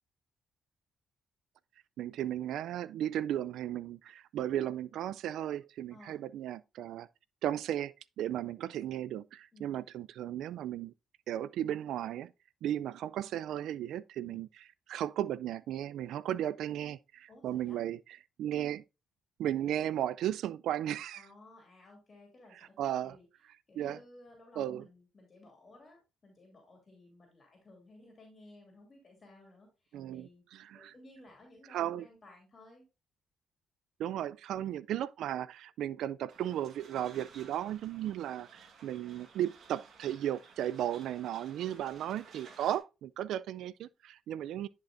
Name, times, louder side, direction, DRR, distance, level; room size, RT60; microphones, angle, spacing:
voice 1, 2.0-7.1 7.4-10.9 11.3-12.3 12.6-14.5 14.9-18.0 18.4-18.8 19.4-21.2 22.8-23.2 23.8-24.0 24.6-24.9 29.9-30.9 31.7-32.1 34.0-44.7, right 11 dB, 80° right, 0.3 m, -35 dB
voice 2, 9.5-9.8 14.2-14.4 17.3-17.8 21.1-22.8 23.0-23.3 23.7-30.4 30.7-32.9 34.5-34.7, left 2 dB, 35° left, 2.7 m, -57 dB
sound 1, 36.3-42.8, right 5 dB, 60° right, 1.5 m, -56 dB
10.5 x 5.2 x 2.5 m
cardioid pair, 90°, 0 cm